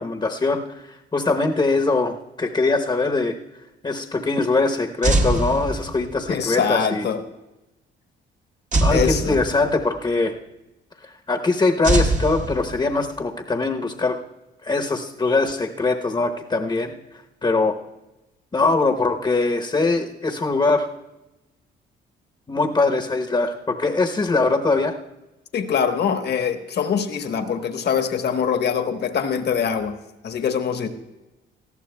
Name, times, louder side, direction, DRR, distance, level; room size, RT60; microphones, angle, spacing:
voice 1, 0.0-3.4 3.8-7.0 8.8-10.3 11.0-14.2 14.6-16.9 17.4-17.8 18.5-20.9 22.5-24.9, left 3 dB, 25° left, 3 dB, 0.9 m, -22 dB
sound 1, 5.0-6.3 8.7-10.0 11.8-13.1, right 2 dB, 40° right, 1.1 m, -23 dB
voice 2, 6.3-7.2 8.9-9.4 25.5-30.0 30.2-30.9, left 7 dB, 60° left, 6 dB, 1.2 m, -23 dB
19.0 x 13.5 x 2.2 m, 0.99 s
cardioid pair, 90°, 20 cm